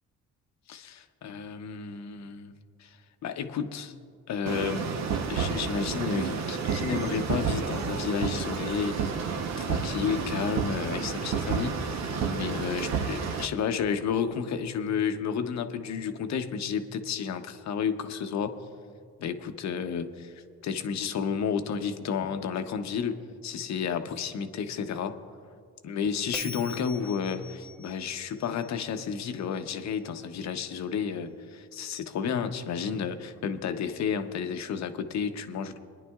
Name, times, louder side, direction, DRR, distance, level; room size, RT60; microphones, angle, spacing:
voice 1, 0.7-2.5 2.8-3.9 4.3-4.9 5.3-9.2 9.6-18.6 19.2-25.2 25.8-35.8, left 6 dB, 65° left, 8 dB, 0.8 m, -31 dB
sound 1, 4.5-13.5, right 6 dB, 60° right, 0.9 m, -30 dB
Bell, 26.3-29.6, left 1 dB, 5° left, 0.7 m, -44 dB
25.0 x 10.5 x 2.4 m, 2.2 s
cardioid pair, 90°, 30 cm